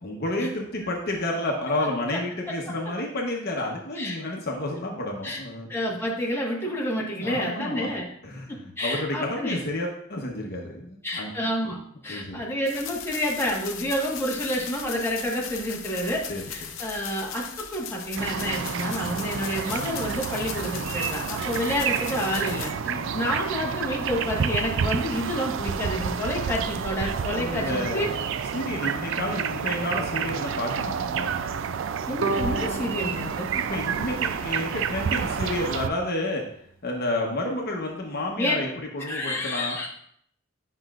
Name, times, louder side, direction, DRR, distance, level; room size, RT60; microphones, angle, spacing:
voice 1, 0.0-5.7 7.1-7.9 8.2-11.3 12.1-12.4 16.3-16.8 22.9-23.2 27.4-28.1 28.5-31.3 33.5-36.4 36.8-39.8, left 1 dB, 55° left, 0 dB, 1.0 m, -30 dB
voice 2, 5.7-8.1 8.5-9.6 11.0-11.8 12.0-16.2 16.5-28.1 32.1-33.5 38.4-38.6 39.0-39.9, equal, 10° left, -4 dB, 1.4 m, -29 dB
sound 1, 12.6-22.7, left 8 dB, 85° left, 0.7 m, -38 dB
sound 2, 18.2-35.9, right 7 dB, 70° right, 0.4 m, -29 dB
Bowed string instrument, 32.2-35.3, right 2 dB, 85° right, 0.8 m, -33 dB
9.7 x 5.7 x 2.4 m, 0.67 s
head